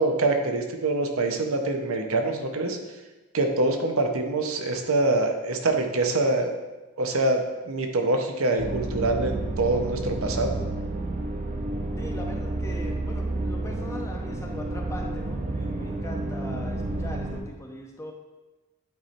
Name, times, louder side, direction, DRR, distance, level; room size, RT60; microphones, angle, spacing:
voice 1, 0.0-2.8 3.3-6.5 7.0-10.6, right 2 dB, 75° right, 4 dB, 0.8 m, -25 dB
sound 1, 8.6-17.4, right 2 dB, 35° right, 0.6 m, -30 dB
voice 2, 12.0-18.1, equal, 15° left, 1 dB, 0.6 m, -40 dB
9.3 x 3.2 x 4.2 m, 1.1 s
head